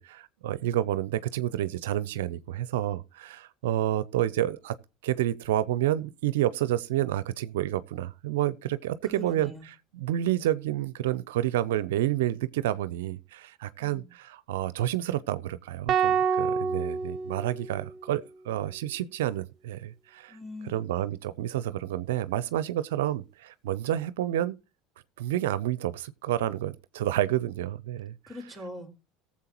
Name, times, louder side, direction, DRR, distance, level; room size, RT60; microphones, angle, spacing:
voice 1, 0.0-4.7 5.0-9.5 9.9-20.4 20.6-24.6 25.2-28.1, right 13 dB, 80° right, 0.5 m, -29 dB
voice 2, 9.0-9.7 13.8-14.1 20.3-20.9 28.3-29.0, left 1 dB, 5° left, 3.5 m, -42 dB
sound 1, 15.9-18.2, right 6 dB, 45° right, 0.7 m, -28 dB
18.5 x 7.3 x 2.9 m
hypercardioid pair, 80°, 0 cm